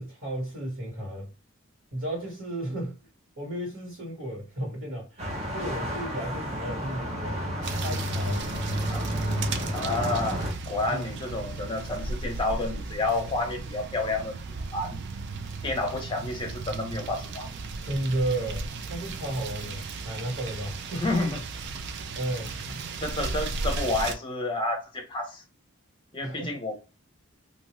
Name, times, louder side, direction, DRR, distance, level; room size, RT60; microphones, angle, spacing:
voice 1, 0.0-1.3 1.9-3.0 3.4-7.5 7.8-8.5 10.9-11.1 17.8-21.1 22.2-22.8 26.2-26.6, right 1 dB, 70° right, 1.6 m, -33 dB
sound 1, 5.2-10.5, equal, 30° right, 0.8 m, -31 dB
sound 2, 7.6-24.1, right 3 dB, 50° right, 0.4 m, -36 dB
voice 2, 9.7-14.4 14.7-15.0 15.6-17.5 21.0-21.4 23.0-25.4 26.1-26.9, left 2 dB, 20° left, 0.7 m, -30 dB
2.6 x 2.3 x 3.1 m
head